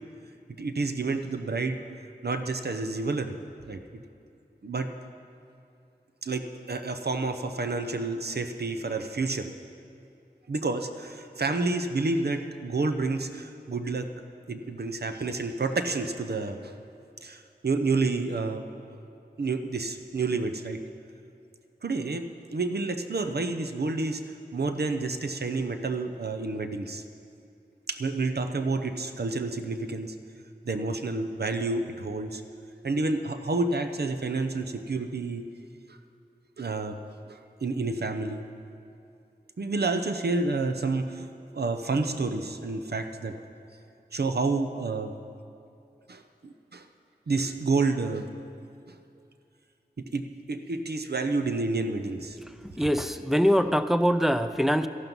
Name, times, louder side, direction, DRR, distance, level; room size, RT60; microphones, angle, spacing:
voice 1, 0.6-1.8 2.2-3.4 3.7-3.8 4.6-4.9 6.2-9.5 10.5-14.1 14.5-16.8 17.2-18.7 19.4-20.8 21.8-27.0 27.9-30.1 30.6-32.4 32.8-35.5 36.6-37.0 37.3-38.4 39.6-41.3 41.5-43.4 44.1-45.1 46.1-46.9 47.3-48.3 50.0-52.4, right 3 dB, 70° right, 7 dB, 0.7 m, -29 dB
voice 2, 52.8-54.9, equal, ahead, 9 dB, 0.5 m, -23 dB
13.5 x 12.0 x 5.4 m, 2.6 s
wide cardioid pair, 60°, 17 cm